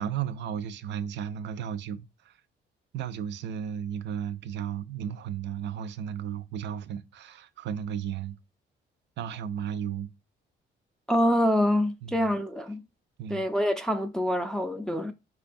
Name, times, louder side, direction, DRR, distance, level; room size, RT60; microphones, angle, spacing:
voice 1, 0.0-2.3 2.9-8.4 9.2-10.1 12.0-12.3 13.2-13.5, right 8 dB, 65° right, 0.4 m, -34 dB
voice 2, 11.1-12.8 13.3-15.1, equal, 5° left, 0.3 m, -26 dB
4.5 x 2.3 x 2.5 m
cardioid pair, 90°, 20 cm